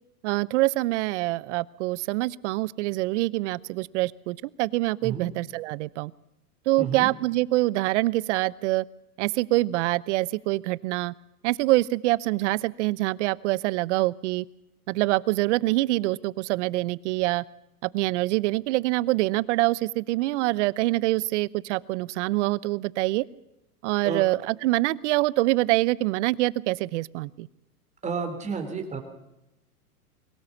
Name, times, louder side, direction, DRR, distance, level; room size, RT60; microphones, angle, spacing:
voice 1, 0.2-6.1 6.7-8.8 9.2-11.1 11.4-14.4 14.9-17.4 17.8-23.2 23.8-27.5, right 19 dB, 50° right, 22 dB, 0.7 m, -25 dB
voice 2, 6.8-7.1 24.0-24.2 28.0-29.0, right 5 dB, 15° right, 4 dB, 3.1 m, -31 dB
22.0 x 18.0 x 7.2 m, 0.90 s
hypercardioid pair, 125°, 46 cm